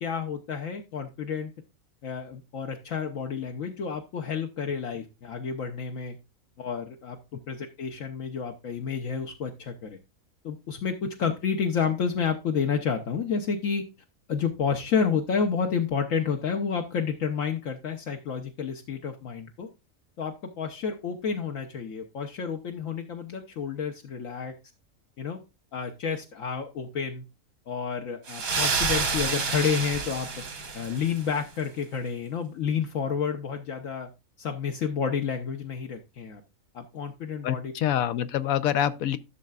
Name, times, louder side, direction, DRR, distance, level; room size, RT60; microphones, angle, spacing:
voice 1, 0.0-1.5 2.0-6.2 6.6-7.2 7.5-10.0 10.4-13.8 14.3-19.7 20.2-24.5 25.2-25.4 25.7-27.2 27.7-30.3 30.7-34.1 34.4-36.4 36.7-37.7, left 6 dB, 70° left, 1.3 m, -30 dB
sound 1, 28.3-31.3, right 4 dB, 80° right, 2.0 m, -29 dB
voice 2, 37.4-39.2, left 10 dB, 90° left, 1.1 m, -26 dB
12.5 x 6.5 x 2.3 m
omnidirectional pair, 1.4 m